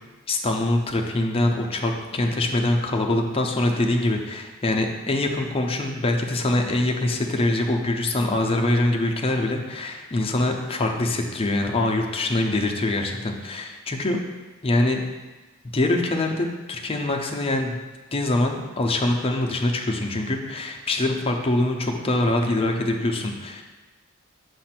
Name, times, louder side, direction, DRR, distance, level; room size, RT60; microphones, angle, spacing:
voice 1, 0.3-14.2 14.6-15.0 15.7-17.8 18.1-23.6, left 2 dB, 25° left, 2 dB, 0.6 m, -24 dB
7.4 x 2.6 x 5.8 m, 1.2 s
head